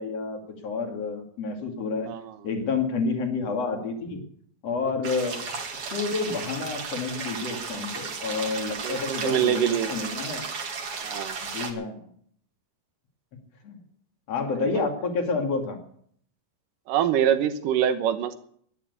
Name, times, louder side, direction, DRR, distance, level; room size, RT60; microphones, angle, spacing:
voice 1, 0.0-2.1 2.4-4.2 4.6-5.6 5.9-9.6 9.9-10.4 11.4-12.1 13.6-13.8 14.3-15.8, left 4 dB, 45° left, 4 dB, 3.2 m, -29 dB
sound 1, 5.0-11.7, right 5 dB, 45° right, 2.5 m, -34 dB
voice 2, 8.8-9.9 11.0-11.4 14.6-14.8 16.9-18.4, right 9 dB, 70° right, 10 dB, 2.5 m, -24 dB
12.0 x 10.5 x 9.5 m, 0.63 s
omnidirectional pair, 4.2 m